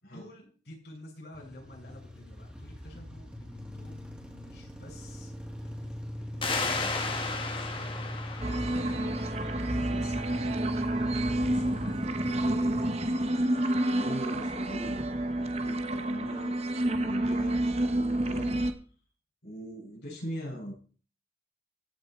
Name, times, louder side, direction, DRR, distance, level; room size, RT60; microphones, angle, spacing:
voice 1, 0.1-5.3 5.6-8.1 8.6-8.9 9.3-10.5 11.5-12.0 12.3-12.7, left 1 dB, 70° left, -3 dB, 7.4 m, -49 dB
sound 1, 1.3-13.0, equal, 5° right, 2.9 m, -41 dB
sound 2, 6.4-9.8, left 3 dB, 30° left, 1.7 m, -34 dB
sound 3, 8.4-18.7, right 1 dB, 35° right, 1.1 m, -29 dB
voice 2, 13.9-15.0 15.3-16.6 16.8-17.6 17.9-18.6 19.4-20.7, equal, 90° left, -5 dB, 6.7 m, -40 dB
15.5 x 7.8 x 4.5 m, 0.41 s
head